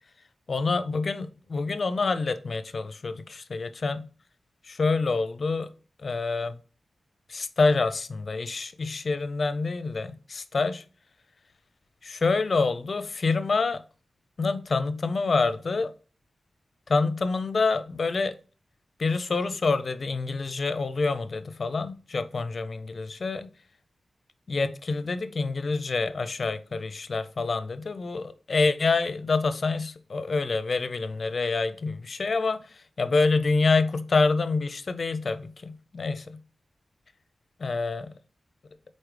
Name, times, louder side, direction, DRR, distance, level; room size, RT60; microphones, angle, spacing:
voice 1, 0.5-4.1 4.7-5.7 6.0-6.6 7.3-10.8 12.0-13.8 14.4-15.9 16.9-18.3 19.0-23.5 24.5-32.6 33.0-36.4 37.6-38.1, left 4 dB, 50° left, 0.5 m, -27 dB
4.7 x 4.2 x 4.9 m
wide cardioid pair, 115°, 0 cm